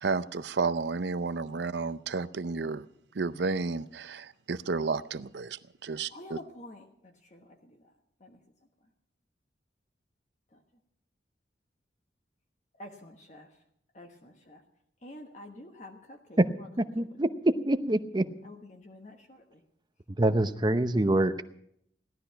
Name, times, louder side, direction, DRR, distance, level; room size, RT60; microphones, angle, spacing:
voice 1, 0.0-2.9 3.1-6.4, right 4 dB, 70° right, 0.6 m, -32 dB
voice 2, 6.1-7.9 8.2-8.4 10.5-10.6 12.8-13.5 13.9-14.6 15.0-16.7 18.4-19.6, left 1 dB, 40° left, 1.3 m, -48 dB
voice 3, 16.8-17.3 17.7-18.2 20.2-21.4, right 1 dB, 25° right, 0.7 m, -26 dB
17.0 x 12.5 x 5.8 m
head